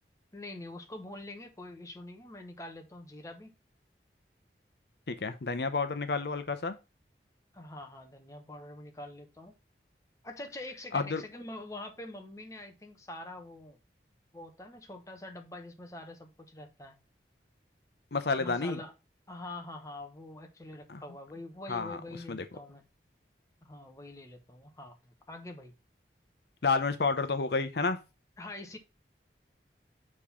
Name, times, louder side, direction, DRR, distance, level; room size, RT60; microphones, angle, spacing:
voice 1, 0.3-3.5 7.5-9.5 10.2-13.8 14.3-17.0 18.4-18.9 19.3-22.8 23.6-25.7 28.4-28.8, left 1 dB, 20° left, 1.0 m, -45 dB
voice 2, 5.2-6.7 10.9-11.2 18.1-18.8 20.9-21.0 21.7-22.0 22.3-22.4 26.6-28.0, left 4 dB, 70° left, 0.7 m, -30 dB
6.6 x 3.7 x 5.6 m
head